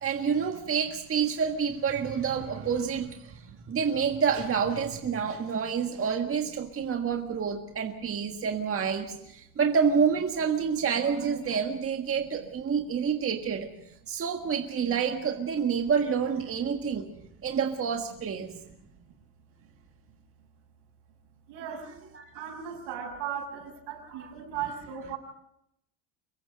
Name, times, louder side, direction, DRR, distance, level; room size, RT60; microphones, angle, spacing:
voice 1, 0.0-13.7 14.1-17.1 17.4-18.6 22.1-22.3 24.1-24.3, right 6 dB, 35° right, 4 dB, 1.7 m, -28 dB
voice 2, 3.3-3.6 5.2-5.6 8.3-8.5 18.6-18.7 21.5-21.9 22.3-25.2, right 8 dB, 80° right, 4 dB, 6.6 m, -38 dB
25.5 x 22.0 x 5.2 m, 0.79 s
cardioid pair, 130°, 41 cm